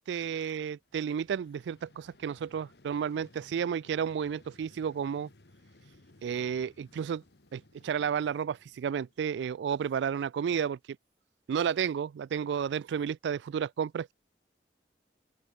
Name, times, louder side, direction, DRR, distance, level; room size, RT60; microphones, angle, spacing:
voice 1, 0.0-5.3 6.2-7.2 7.5-10.8 11.5-14.1, right 7 dB, 80° right, 0.3 m, -32 dB
Vehicle, 0.8-9.7, left 2 dB, 65° left, 1.5 m, -60 dB
open air
head